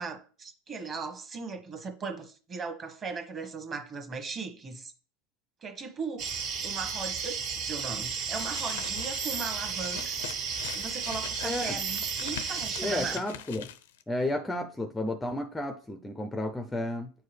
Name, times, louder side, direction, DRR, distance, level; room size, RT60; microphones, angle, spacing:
voice 1, 0.0-4.9 5.6-10.2 10.7-13.2, right 4 dB, 25° right, 1.1 m, -38 dB
sound 1, 6.2-13.2, right 6 dB, 50° right, 1.6 m, -33 dB
sound 2, 8.0-14.0, left 10 dB, 90° left, 0.5 m, -43 dB
voice 2, 11.4-11.8 12.8-13.7 14.1-17.1, left 1 dB, 5° left, 0.4 m, -32 dB
8.7 x 4.7 x 3.3 m
supercardioid pair, 145°, 0 cm